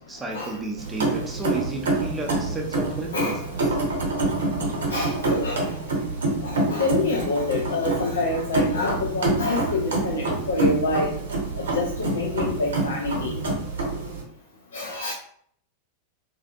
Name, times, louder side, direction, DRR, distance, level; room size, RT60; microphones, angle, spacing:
voice 1, 0.0-3.4, right 3 dB, 15° right, 0 dB, 0.5 m, -33 dB
sound 1, 0.8-14.2, right 2 dB, 65° right, 0.7 m, -26 dB
voice 2, 3.1-3.5 4.9-5.8 6.4-11.1 11.6-13.4 14.7-15.1, left 3 dB, 65° left, 0 dB, 0.3 m, -27 dB
2.4 x 2.4 x 2.4 m, 0.62 s
figure-of-eight pair, 90°, 0 cm